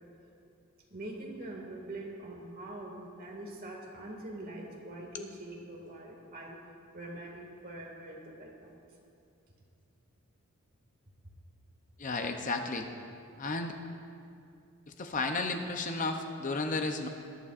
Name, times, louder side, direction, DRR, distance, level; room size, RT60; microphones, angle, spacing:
voice 1, 0.9-6.6 6.9-8.7, right 1 dB, 40° right, -1 dB, 2.0 m, -44 dB
voice 2, 12.0-12.9 13.4-13.8 15.0-17.1, left 3 dB, 35° left, 5 dB, 0.6 m, -33 dB
20.5 x 11.5 x 2.5 m, 2.5 s
head